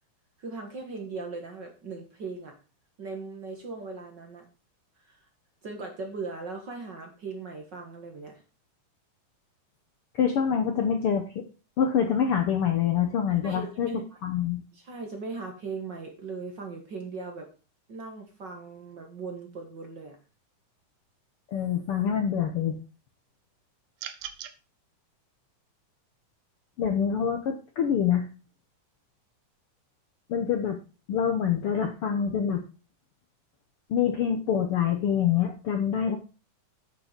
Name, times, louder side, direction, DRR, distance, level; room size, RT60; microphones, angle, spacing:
voice 1, 0.4-2.5 3.0-4.5 5.1-5.2 5.6-8.4 13.4-14.0 14.7-17.5 17.9-20.2, right 4 dB, 45° right, 3 dB, 1.7 m, -38 dB
voice 2, 10.1-11.4 11.8-14.6 21.5-22.8 26.8-28.3 30.3-30.8 31.1-32.6 33.9-36.2, left 8 dB, 65° left, 5 dB, 1.4 m, -26 dB
sound 1, 24.0-24.6, right 10 dB, 70° right, 1.9 m, -38 dB
9.0 x 6.8 x 5.1 m, 0.34 s
omnidirectional pair, 3.6 m